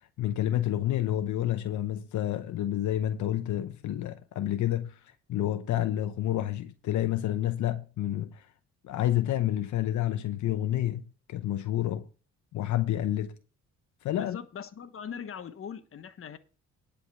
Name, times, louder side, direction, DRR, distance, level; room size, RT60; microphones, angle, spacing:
voice 1, 0.2-8.5 8.8-11.0 11.3-12.1 12.5-13.4 14.0-14.4, left 12 dB, 75° left, 0.8 m, -29 dB
voice 2, 14.2-16.4, left 7 dB, 45° left, 1.2 m, -41 dB
10.5 x 5.2 x 7.0 m
cardioid pair, 90°, 30 cm